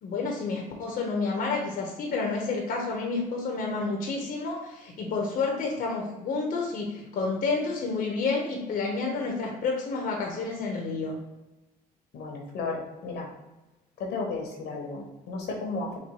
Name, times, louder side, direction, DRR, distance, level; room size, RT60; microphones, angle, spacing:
voice 1, 0.0-11.2, left 4 dB, 55° left, 0 dB, 0.9 m, -30 dB
voice 2, 12.1-13.3 14.0-16.0, left 3 dB, 75° left, 1 dB, 1.2 m, -34 dB
4.2 x 2.2 x 4.6 m, 1.1 s
cardioid pair, 110°, 17 cm